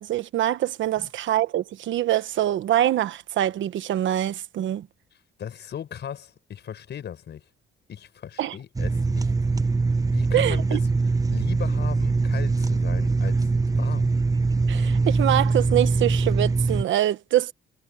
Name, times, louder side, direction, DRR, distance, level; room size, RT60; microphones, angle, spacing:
voice 1, 0.0-4.9 8.4-8.5 10.3-10.8 14.7-17.5, right 13 dB, 75° right, 1.2 m, -24 dB
voice 2, 5.4-7.4 7.9-9.3 10.1-10.8 11.3-14.1, left 9 dB, 60° left, 5.8 m, -37 dB
sound 1, 8.8-16.8, right 3 dB, 15° right, 0.8 m, -23 dB
cardioid pair, 90°, 20 cm